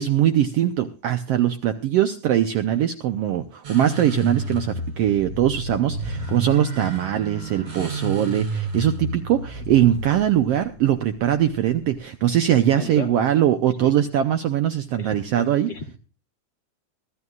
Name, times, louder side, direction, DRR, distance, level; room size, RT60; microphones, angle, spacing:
voice 1, 0.0-15.7, right 11 dB, 75° right, 9 dB, 1.5 m, -21 dB
sound 1, 3.6-12.0, right 2 dB, 60° right, 6.3 m, -31 dB
voice 2, 12.7-13.1 13.6-13.9 15.0-15.1 15.3-16.0, left 5 dB, 45° left, 4 dB, 1.6 m, -36 dB
24.5 x 12.5 x 2.4 m, 0.34 s
omnidirectional pair, 3.5 m